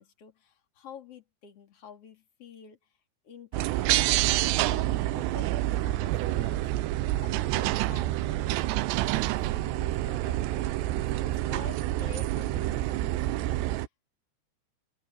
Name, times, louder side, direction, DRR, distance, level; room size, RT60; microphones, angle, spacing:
voice 1, 0.0-2.8 3.2-6.7 7.2-13.8, left 7 dB, 40° left, 3.4 m, -49 dB
sound 1, 3.5-13.9, right 16 dB, 90° right, 2.9 m, -28 dB
open air
omnidirectional pair, 4.7 m